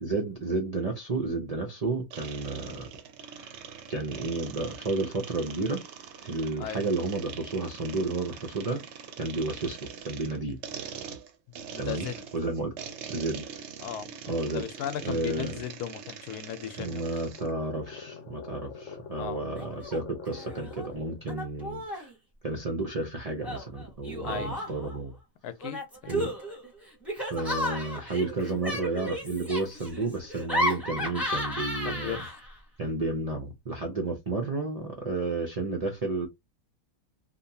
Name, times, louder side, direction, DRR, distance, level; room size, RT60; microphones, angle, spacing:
voice 1, 0.0-2.8 3.9-5.8 6.2-8.8 9.2-9.8 10.1-10.6 11.8-12.1 12.3-12.7 13.1-13.4 14.3-14.7 15.0-15.6 16.8-22.1 22.4-25.2 26.1-26.3 27.2-32.2 32.8-36.3, right 3 dB, 85° right, 0.3 m, -31 dB
sound 1, 2.1-17.5, right 7 dB, 65° right, 0.7 m, -43 dB
voice 2, 11.7-12.2 13.8-14.1 14.5-17.1 19.2-19.4 24.2-24.7 25.4-25.8 26.2-26.3 31.8-32.4, left 9 dB, 85° left, 1.1 m, -36 dB
sound 2, 16.5-21.3, left 5 dB, 60° left, 0.9 m, -46 dB
Laughter, 19.6-20.0 20.3-20.9 21.3-22.1 23.4-24.9 25.6-32.6, left 1 dB, ahead, 0.7 m, -33 dB
2.8 x 2.2 x 2.7 m
omnidirectional pair, 1.6 m